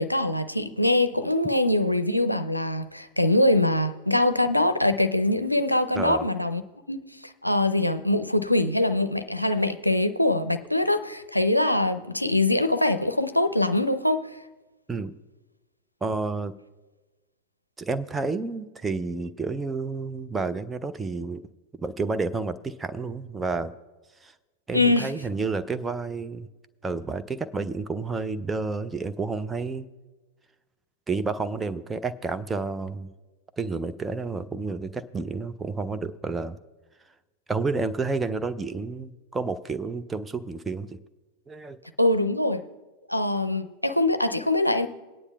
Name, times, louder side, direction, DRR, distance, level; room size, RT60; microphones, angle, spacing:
voice 1, 0.0-6.6 6.9-7.0 7.2-14.2 24.7-25.1 42.0-42.6 43.1-44.9, left 1 dB, 90° left, 10 dB, 0.5 m, -23 dB
voice 2, 16.0-16.5 17.8-21.4 21.8-23.7 24.2-24.3 24.7-26.5 26.8-29.9 31.1-33.1 33.6-36.6 37.5-41.0 41.5-41.8, right 4 dB, 15° right, 10 dB, 0.5 m, -30 dB
21.0 x 9.7 x 2.3 m, 1.2 s
figure-of-eight pair, 90°, 0 cm